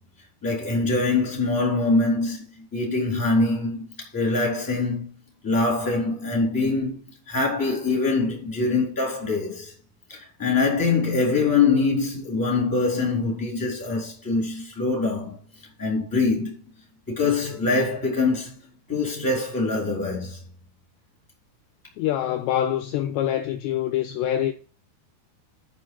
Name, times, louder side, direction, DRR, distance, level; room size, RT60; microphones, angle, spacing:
voice 1, 0.4-5.1 5.4-7.0 7.3-9.7 10.1-15.4 15.8-16.5 17.1-18.6 18.9-20.4, left 3 dB, 5° left, 3.3 m, -24 dB
voice 2, 22.0-24.5, left 11 dB, 90° left, 2.5 m, -25 dB
9.1 x 6.2 x 5.5 m
omnidirectional pair, 5.8 m